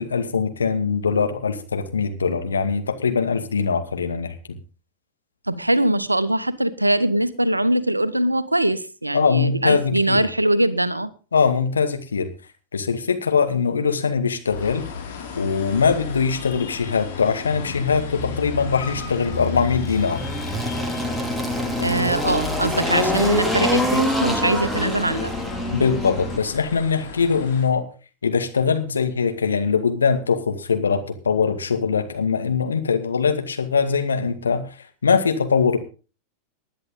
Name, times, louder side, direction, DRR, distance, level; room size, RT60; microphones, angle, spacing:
voice 1, 0.0-4.6 9.1-10.2 11.3-12.3 12.7-14.9 15.3-20.2 25.7-27.9 28.2-34.6 35.0-35.8, left 5 dB, 70° left, 6 dB, 2.1 m, -22 dB
voice 2, 5.5-11.1 21.8-25.3, right 1 dB, 85° right, 15 dB, 1.1 m, -22 dB
sound 1, 14.5-27.6, left 5 dB, 55° left, 5.2 m, -34 dB
Engine, 18.9-26.4, equal, ahead, 2.7 m, -25 dB
20.0 x 10.5 x 3.8 m, 0.35 s
figure-of-eight pair, 90°, 0 cm